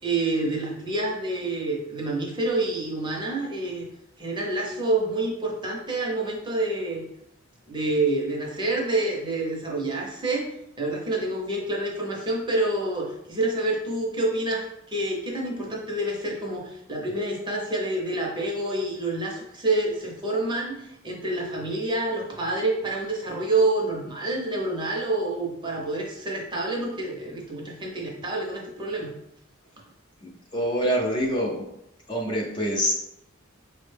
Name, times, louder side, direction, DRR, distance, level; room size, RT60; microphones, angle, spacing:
voice 1, 0.0-3.9 4.2-7.1 7.7-10.5 10.8-29.1, right 2 dB, 25° right, -2 dB, 0.7 m, -27 dB
voice 2, 30.2-31.6 32.1-32.9, equal, 25° left, -1 dB, 0.5 m, -26 dB
4.9 x 2.1 x 3.2 m, 0.81 s
head